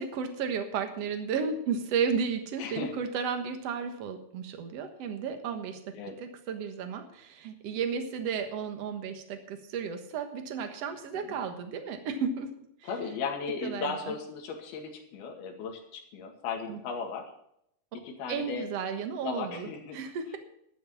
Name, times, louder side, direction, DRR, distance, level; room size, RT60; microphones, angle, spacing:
voice 1, 0.0-12.5 12.8-12.9 13.6-14.1 16.7-16.8 18.3-20.4, right 6 dB, 60° right, 7 dB, 1.7 m, -33 dB
voice 2, 2.6-3.0 5.9-6.2 11.2-11.4 12.8-17.3 18.0-18.7 19.2-20.0, left 5 dB, 70° left, 2 dB, 3.8 m, -36 dB
12.5 x 8.1 x 7.2 m, 0.75 s
omnidirectional pair, 4.7 m